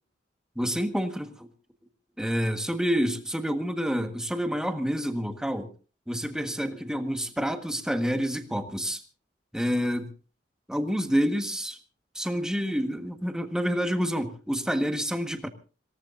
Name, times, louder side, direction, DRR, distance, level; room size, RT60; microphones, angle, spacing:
voice 1, 0.5-1.5 2.2-5.7 6.1-9.0 9.5-10.1 10.7-11.8 12.1-15.5, equal, 5° right, 7 dB, 1.5 m, -28 dB
26.0 x 18.0 x 2.6 m, 0.36 s
head